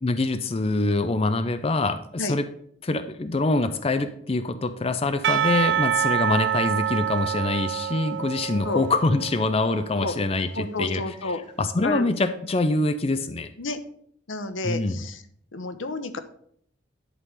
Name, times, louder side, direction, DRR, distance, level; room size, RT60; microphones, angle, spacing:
voice 1, 0.0-2.5 2.8-13.5 14.6-15.0, left 2 dB, 30° left, 8 dB, 0.5 m, -25 dB
Percussion / Church bell, 5.2-10.3, right 10 dB, 60° right, 0.3 m, -27 dB
voice 2, 10.5-11.4 11.8-12.1 13.6-13.8 14.3-15.2 15.5-16.2, left 3 dB, 80° left, 10 dB, 0.9 m, -30 dB
11.0 x 3.8 x 6.5 m, 0.65 s
head